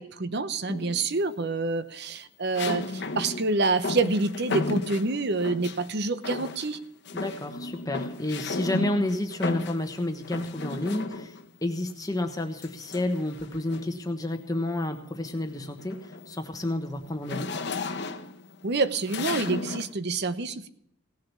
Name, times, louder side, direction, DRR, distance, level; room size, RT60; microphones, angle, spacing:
voice 1, 0.0-6.8 18.6-20.7, right 3 dB, 50° right, 12 dB, 0.8 m, -27 dB
sound 1, 0.7-1.2 2.5-5.9 6.2-6.8 7.0-11.5 12.6-14.0 14.5-14.8 15.1-19.9, left 3 dB, 55° left, 1.1 m, -34 dB
voice 2, 7.1-17.5, left 1 dB, 15° left, 6 dB, 1.1 m, -30 dB
17.5 x 7.6 x 6.9 m, 0.73 s
head